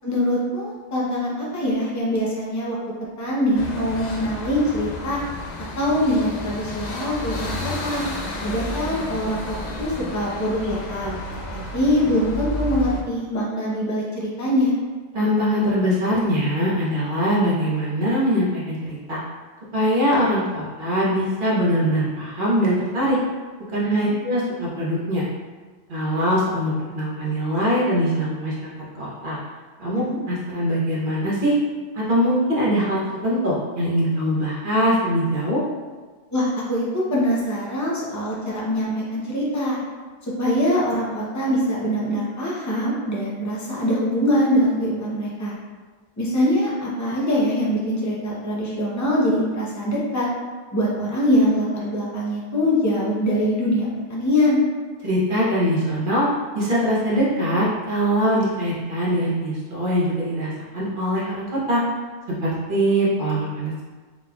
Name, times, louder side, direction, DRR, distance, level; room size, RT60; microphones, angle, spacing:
voice 1, 0.0-2.8 3.2-5.2 5.8-8.0 8.4-11.2 11.5-14.8 23.9-24.1 29.9-30.2 36.3-39.8 40.2-45.5 46.2-50.3 50.7-54.6, equal, 20° left, -5 dB, 0.5 m, -23 dB
sound 1, 3.5-13.0, left 1 dB, 75° left, 0.4 m, -32 dB
voice 2, 15.1-19.2 19.7-23.2 23.7-25.3 25.9-28.7 29.0-29.4 29.8-31.5 31.9-35.6 55.0-56.3 56.5-61.8 62.4-63.8, equal, 45° right, -7 dB, 1.1 m, -22 dB
3.8 x 3.5 x 2.3 m, 1.4 s
omnidirectional pair, 1.3 m